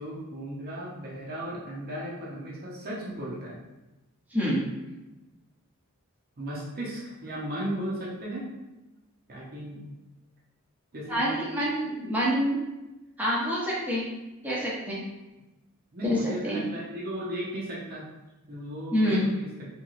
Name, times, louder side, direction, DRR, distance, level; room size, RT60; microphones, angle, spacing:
voice 1, 0.0-3.6 6.4-8.5 9.3-9.9 10.9-11.5 15.9-18.1 18.5-19.7, right 1 dB, 45° right, -4 dB, 0.7 m, -36 dB
voice 2, 4.3-4.6 11.1-12.6 13.2-14.1 14.4-15.0 16.0-16.6 18.9-19.2, equal, 5° right, -7 dB, 0.8 m, -27 dB
3.6 x 3.0 x 2.5 m, 1.0 s
head